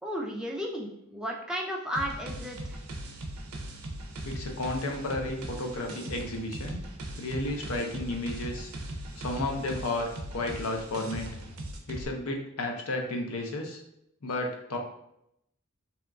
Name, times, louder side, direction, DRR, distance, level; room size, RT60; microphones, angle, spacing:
voice 1, 0.0-2.8, equal, 5° right, -2 dB, 0.3 m, -34 dB
sound 1, 1.9-12.0, right 1 dB, 90° right, 0.4 m, -39 dB
voice 2, 4.2-6.8 7.2-8.7 9.2-11.3 11.9-13.8 14.2-14.8, left 2 dB, 75° left, 2 dB, 0.5 m, -32 dB
2.8 x 2.3 x 2.4 m, 0.79 s
head